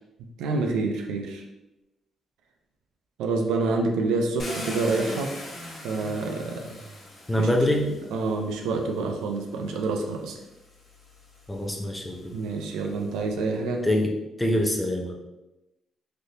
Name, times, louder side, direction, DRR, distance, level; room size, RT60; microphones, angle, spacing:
voice 1, 0.4-1.4 3.2-5.3 5.8-6.6 7.4-7.5 8.1-10.3 12.3-13.8, right 3 dB, 90° right, 3 dB, 0.4 m, -27 dB
Car, 4.4-8.5 9.5-9.6 10.1-13.4, left 1 dB, 40° left, 1.2 m, -40 dB
voice 2, 7.3-7.9 11.5-12.3 13.8-14.1 14.4-15.2, left 1 dB, 10° left, 1 dB, 0.5 m, -24 dB
3.3 x 2.6 x 2.7 m, 0.98 s
cardioid pair, 90°, 0 cm